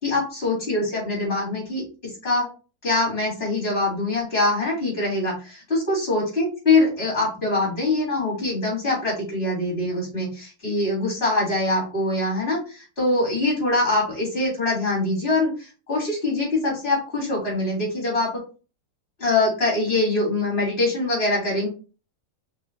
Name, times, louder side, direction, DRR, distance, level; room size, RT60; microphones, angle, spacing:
voice 1, 0.0-2.5 2.8-18.3 19.2-21.7, left 2 dB, 35° left, -3 dB, 3.2 m, -23 dB
5.4 x 3.8 x 2.6 m, 0.34 s
omnidirectional pair, 1.8 m